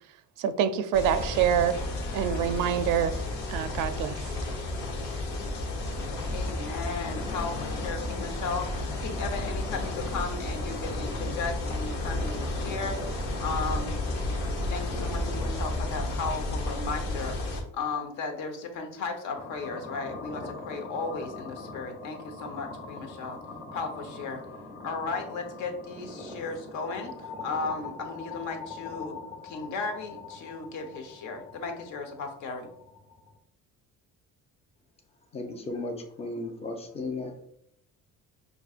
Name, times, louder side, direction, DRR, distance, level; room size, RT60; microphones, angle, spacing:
voice 1, 0.4-1.8 2.1-3.2 3.5-4.4, right 9 dB, 80° right, 11 dB, 0.5 m, -26 dB
sound 1, 0.9-17.6, left 2 dB, 90° left, 1.1 m, -32 dB
voice 2, 6.3-13.0 13.4-14.0 14.7-17.4 17.7-23.4 23.7-24.4 24.8-29.2 29.4-32.7, left 4 dB, 70° left, 4 dB, 0.9 m, -35 dB
sound 2, 19.4-33.4, left 3 dB, 40° left, 1.1 m, -43 dB
voice 3, 35.3-37.3, left 2 dB, 20° left, 4 dB, 0.5 m, -35 dB
6.0 x 2.6 x 2.4 m, 0.72 s
cardioid pair, 160°, 32 cm